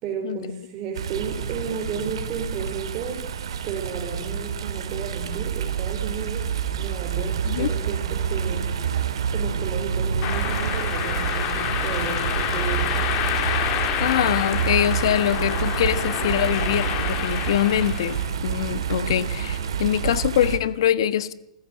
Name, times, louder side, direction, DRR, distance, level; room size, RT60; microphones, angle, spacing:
voice 1, 0.0-3.3 3.6-12.9, right 5 dB, 35° right, 4.1 m, -33 dB
sound 1, 0.9-20.6, right 8 dB, 75° right, 2.7 m, -28 dB
sound 2, 10.2-18.3, left 11 dB, 40° left, 2.8 m, -28 dB
voice 2, 14.0-21.3, left 11 dB, 65° left, 1.3 m, -23 dB
28.0 x 15.0 x 7.8 m
hypercardioid pair, 125°, 3 cm